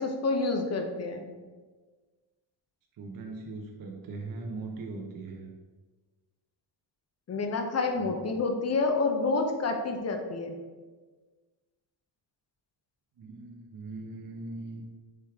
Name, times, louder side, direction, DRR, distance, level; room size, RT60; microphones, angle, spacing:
voice 1, 0.0-1.3 7.3-10.5, left 3 dB, 30° left, 4 dB, 0.7 m, -28 dB
voice 2, 3.0-5.5 8.0-8.1 13.2-14.8, right 3 dB, 45° right, 0 dB, 0.7 m, -40 dB
4.7 x 3.2 x 3.5 m, 1.4 s
supercardioid pair, 60°, 49 cm